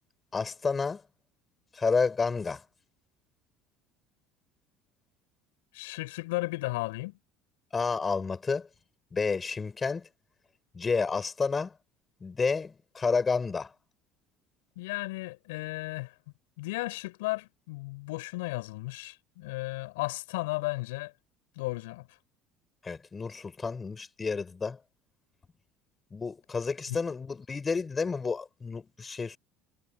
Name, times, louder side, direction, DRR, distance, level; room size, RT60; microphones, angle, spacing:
voice 1, 0.3-1.0 1.7-2.6 7.7-8.7 9.1-10.1 10.7-11.7 12.2-13.7 22.8-24.8 26.1-29.4, left 4 dB, 25° left, 6.9 m, -30 dB
voice 2, 5.7-7.1 14.7-16.1 16.6-21.1 21.6-22.1 26.9-27.0, left 22 dB, 80° left, 6.8 m, -34 dB
hypercardioid pair, 75°, 0 cm